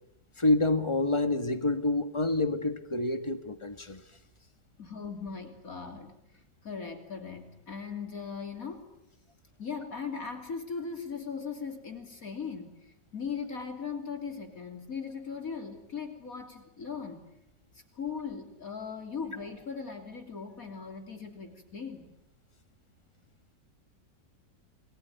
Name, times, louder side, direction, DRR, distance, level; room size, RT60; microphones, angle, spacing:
voice 1, 0.4-4.0, left 2 dB, 15° left, 10 dB, 1.6 m, -27 dB
voice 2, 4.8-8.8 9.6-17.3 17.7-22.1, left 5 dB, 50° left, 5 dB, 3.4 m, -39 dB
29.5 x 21.5 x 9.3 m, 0.80 s
omnidirectional pair, 1.9 m